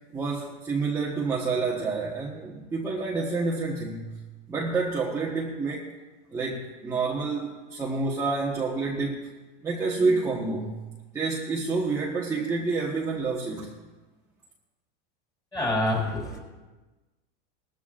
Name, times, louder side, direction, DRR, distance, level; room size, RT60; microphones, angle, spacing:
voice 1, 0.1-4.2 4.5-5.9 6.3-9.3 9.6-10.8 11.1-13.7, right 4 dB, 10° right, -4 dB, 1.2 m, -28 dB
voice 2, 15.5-16.4, left 1 dB, 10° left, -2 dB, 3.7 m, -26 dB
20.5 x 14.5 x 2.5 m, 1.2 s
supercardioid pair, 165°, 30 cm